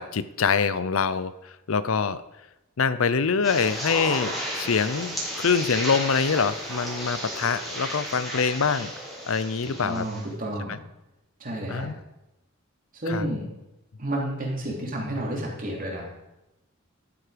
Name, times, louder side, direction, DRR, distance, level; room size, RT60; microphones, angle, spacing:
voice 1, 0.0-2.2 2.8-8.9 9.3-10.1 11.7-11.9 13.1-13.3, left 5 dB, 75° left, 15 dB, 0.6 m, -25 dB
sound 1, 3.4-10.2, equal, ahead, 3.0 m, -33 dB
voice 2, 9.8-10.8 11.4-11.9 12.9-13.5 14.0-16.0, right 1 dB, 40° right, -2 dB, 3.2 m, -30 dB
12.5 x 8.5 x 5.1 m, 0.94 s
head